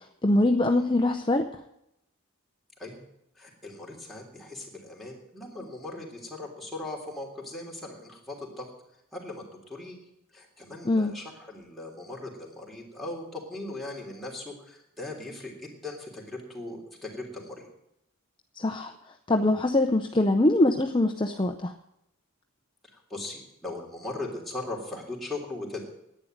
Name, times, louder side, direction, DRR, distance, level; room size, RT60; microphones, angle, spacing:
voice 1, 0.2-1.5 10.9-11.1 18.6-18.9 19.3-21.7, left 2 dB, 25° left, 5 dB, 0.7 m, -23 dB
voice 2, 3.4-8.7 9.1-10.0 10.3-17.6 22.9-25.9, left 2 dB, ahead, 0 dB, 3.3 m, -39 dB
11.0 x 9.4 x 8.8 m, 0.79 s
head